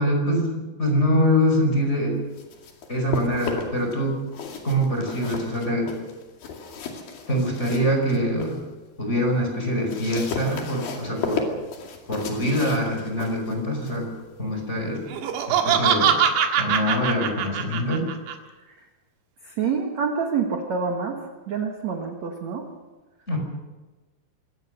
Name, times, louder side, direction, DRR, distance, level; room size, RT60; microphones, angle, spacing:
voice 1, 0.0-2.2 2.9-4.2 4.6-5.9 7.3-8.5 9.0-11.4 12.1-14.1 14.4-15.0 15.5-16.1 16.6-18.1 23.3-23.4, equal, 15° left, 2 dB, 4.9 m, -24 dB
sound 1, 2.1-3.9 4.3-8.6 9.0-15.6, left 4 dB, 55° left, 3.9 m, -35 dB
Laughter, 15.1-18.3, right 8 dB, 80° right, 3.9 m, -22 dB
voice 2, 19.4-22.7, right 5 dB, 55° right, 3 dB, 2.0 m, -27 dB
24.5 x 17.5 x 6.6 m, 1.2 s
omnidirectional pair, 5.3 m